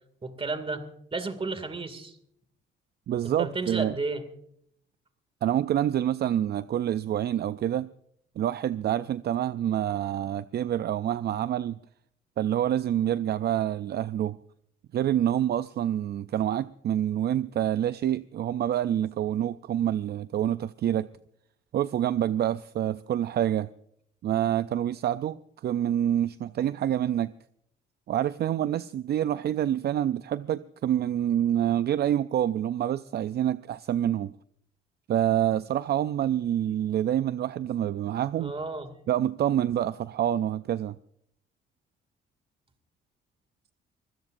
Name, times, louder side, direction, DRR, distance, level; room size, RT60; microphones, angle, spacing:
voice 1, 0.2-0.8 1.1-2.2 3.2-4.2 38.4-38.9, right 3 dB, 25° right, 2.4 m, -32 dB
voice 2, 3.1-3.9 5.4-7.9 8.4-11.8 12.4-14.4 14.9-21.1 21.7-23.7 24.2-27.3 28.1-34.3 35.1-38.5 39.1-41.0, right 11 dB, 55° right, 0.5 m, -27 dB
24.5 x 16.5 x 2.6 m
cardioid pair, 90°, 20 cm